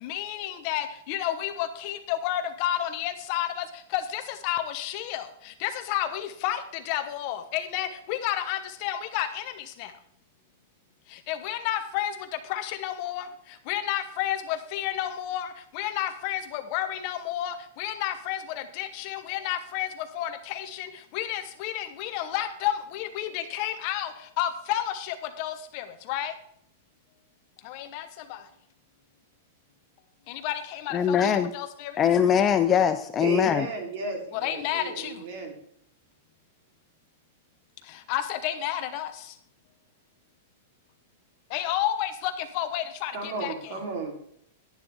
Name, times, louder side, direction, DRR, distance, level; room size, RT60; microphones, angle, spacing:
voice 1, 0.0-3.6 3.9-9.9 11.1-12.1 12.5-13.3 13.7-19.9 20.1-26.3 27.6-28.4 30.3-32.0 34.3-35.2 38.1-39.1 41.5-43.7, left 12 dB, 40° left, 1.0 m, -31 dB
voice 2, 30.9-31.5 32.0-33.7, left 8 dB, 20° left, 0.5 m, -22 dB
voice 3, 33.2-35.5 43.1-44.1, right 3 dB, 50° right, 3.5 m, -33 dB
11.5 x 10.5 x 3.6 m
supercardioid pair, 165°, 0 cm